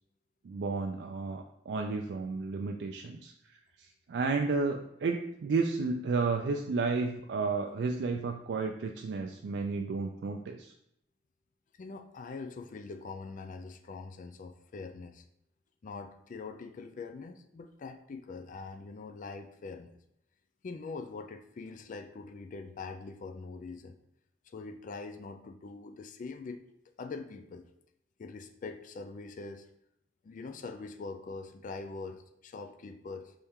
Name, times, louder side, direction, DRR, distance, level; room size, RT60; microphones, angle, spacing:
voice 1, 0.4-10.7, right 4 dB, 70° right, 3 dB, 0.4 m, -32 dB
voice 2, 11.8-15.2 15.8-20.0 20.6-24.0 24.5-26.6 27.0-27.7 28.2-29.7 30.2-33.3, left 4 dB, 45° left, 8 dB, 0.4 m, -43 dB
4.2 x 3.4 x 3.6 m, 0.77 s
head